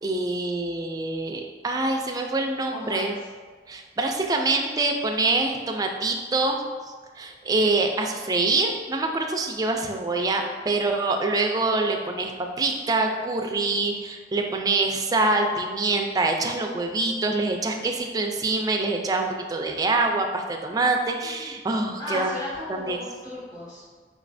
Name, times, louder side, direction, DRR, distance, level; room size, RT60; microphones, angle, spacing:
voice 1, 0.0-3.2 3.7-6.6 7.2-12.3 12.6-22.4 22.7-23.0, right 3 dB, 20° right, 3 dB, 0.3 m, -25 dB
voice 2, 2.7-3.2 22.0-23.8, left 1 dB, 25° left, -9 dB, 1.4 m, -34 dB
4.9 x 3.1 x 2.6 m, 1.5 s
head